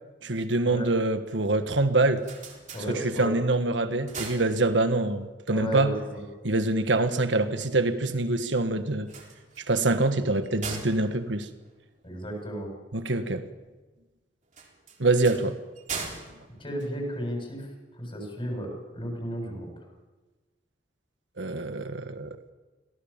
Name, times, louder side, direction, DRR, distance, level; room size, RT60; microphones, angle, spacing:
voice 1, 0.2-2.2 3.0-5.9 6.4-9.1 9.7-11.5 12.9-13.4 15.0-15.6 21.4-22.4, right 2 dB, 70° right, 9 dB, 1.6 m, -25 dB
sound 1, 1.9-3.5 3.8-5.2 8.9-12.4 14.5-17.5, right 5 dB, 40° right, 3.9 m, -41 dB
voice 2, 2.7-3.4 5.5-6.2 12.0-12.7 16.6-19.7, equal, 30° left, 1 dB, 7.4 m, -34 dB
26.0 x 17.5 x 7.4 m, 1.2 s
head